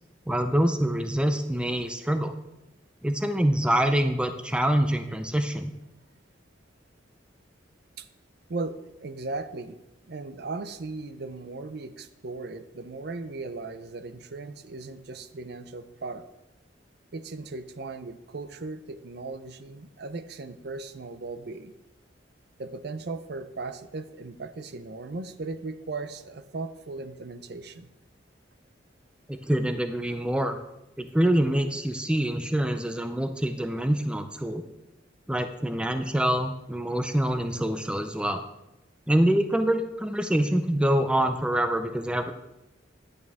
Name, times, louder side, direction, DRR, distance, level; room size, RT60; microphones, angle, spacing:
voice 1, 0.3-2.3 3.0-5.7 29.3-30.6 31.0-34.6 35.3-38.4 39.1-42.3, right 1 dB, 5° right, 8 dB, 0.4 m, -25 dB
voice 2, 8.5-9.8 10.1-16.2 17.1-21.7 22.6-27.9, right 3 dB, 60° right, 11 dB, 0.6 m, -37 dB
10.5 x 8.8 x 3.5 m, 0.95 s
head